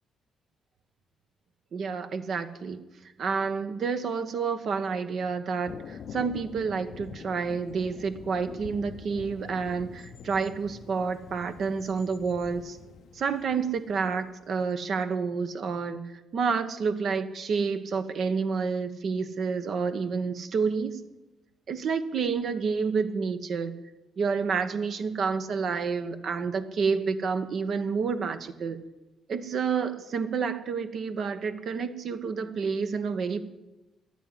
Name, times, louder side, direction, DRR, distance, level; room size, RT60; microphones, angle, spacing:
voice 1, 1.7-2.8 3.2-12.8 13.1-16.0 16.3-20.9 21.7-23.7 24.2-28.8 29.3-33.5, right 5 dB, 60° right, 9 dB, 1.1 m, -29 dB
Thunder, 5.6-14.6, left 7 dB, 65° left, 0.7 m, -46 dB
11.5 x 9.1 x 9.9 m, 1.0 s
cardioid pair, 90°, 0 cm